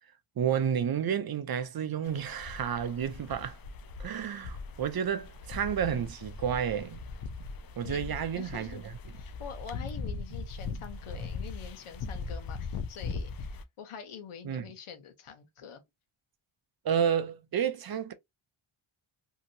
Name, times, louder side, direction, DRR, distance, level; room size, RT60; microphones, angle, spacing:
voice 1, 0.4-3.6 4.0-7.1 7.8-8.8 14.4-14.6 16.8-18.1, right 8 dB, 50° right, 0.5 m, -31 dB
sound 1, 2.0-13.6, left 4 dB, 50° left, 0.5 m, -40 dB
voice 2, 7.8-8.8 9.2-15.8, left 7 dB, 85° left, 0.9 m, -45 dB
2.8 x 2.7 x 2.5 m
wide cardioid pair, 95°, 49 cm